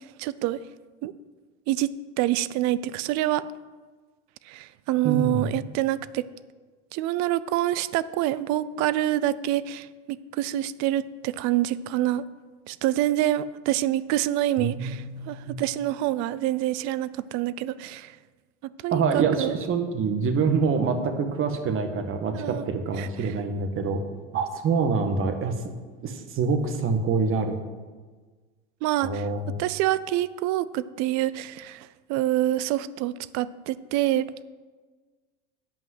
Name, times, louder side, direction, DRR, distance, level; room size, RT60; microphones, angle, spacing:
voice 1, 0.2-0.6 1.0-1.1 1.7-1.9 2.2-3.4 4.5-6.3 6.9-12.2 12.7-18.1 18.6-19.5 22.3-22.7 23.0-23.3 28.8-29.3 29.6-34.3, right 14 dB, 60° right, 17 dB, 0.6 m, -26 dB
voice 2, 5.0-5.5 14.6-15.6 18.9-24.0 24.3-25.6 26.0-27.6 29.0-29.5, right 5 dB, 40° right, 7 dB, 1.5 m, -26 dB
9.0 x 5.5 x 7.8 m, 1.4 s
supercardioid pair, 100°, 31 cm